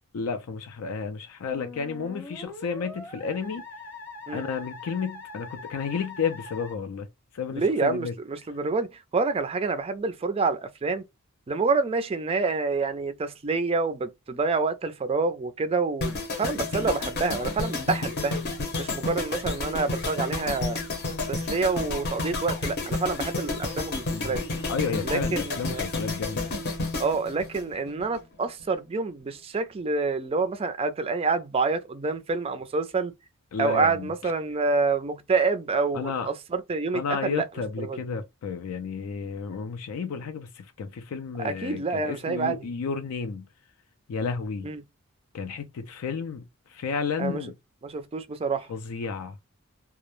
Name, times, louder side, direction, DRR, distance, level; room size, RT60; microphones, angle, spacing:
voice 1, 0.1-3.6 4.3-7.1 7.3-8.1 24.1-24.4 24.7-26.5 33.5-34.3 35.9-36.3 36.9-43.5 44.1-44.7 45.3-46.4 46.7-47.5 48.7-49.4, left 5 dB, 75° left, 0.4 m, -32 dB
Musical instrument, 1.5-6.7, left 3 dB, 10° left, 0.7 m, -42 dB
voice 2, 7.5-8.9 9.1-11.0 11.5-18.4 18.8-20.8 21.3-24.4 25.0-25.8 27.0-33.1 33.6-37.5 37.8-38.0 41.4-42.7 44.6-44.8 47.2-47.5 47.8-48.7, right 4 dB, 25° right, 0.3 m, -27 dB
sound 1, 16.0-28.2 28.5-28.8, left 2 dB, 50° left, 0.7 m, -31 dB
2.3 x 2.0 x 2.9 m
head